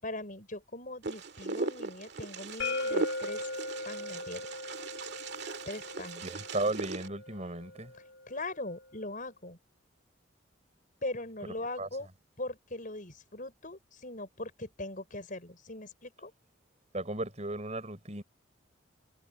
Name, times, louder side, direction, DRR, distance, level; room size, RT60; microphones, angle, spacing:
voice 1, 0.0-3.5 3.8-4.5 5.7-6.3 7.9-9.6 11.0-12.1 12.4-16.3, left 2 dB, 40° left, 5.8 m, -40 dB
Wind, 1.0-7.1, right 3 dB, 55° right, 2.2 m, -38 dB
sound 1, 2.6-8.4, left 2 dB, 60° left, 4.3 m, -39 dB
voice 2, 6.2-7.9 11.8-11.9 16.9-18.2, right 2 dB, 35° right, 5.3 m, -35 dB
head